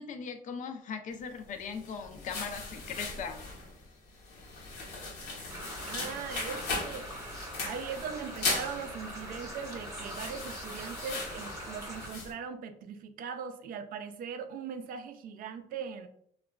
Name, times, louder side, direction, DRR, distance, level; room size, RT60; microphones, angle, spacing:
voice 1, 0.0-3.4, left 6 dB, 50° left, 7 dB, 0.4 m, -39 dB
sound 1, 1.6-12.3, left 3 dB, 80° left, 0.9 m, -39 dB
sound 2, 5.5-12.1, right 1 dB, 15° right, 0.8 m, -43 dB
voice 2, 5.8-7.1 7.6-16.1, right 6 dB, 55° right, 8 dB, 0.4 m, -40 dB
2.9 x 2.2 x 2.3 m, 0.65 s
cardioid pair, 110°, 17 cm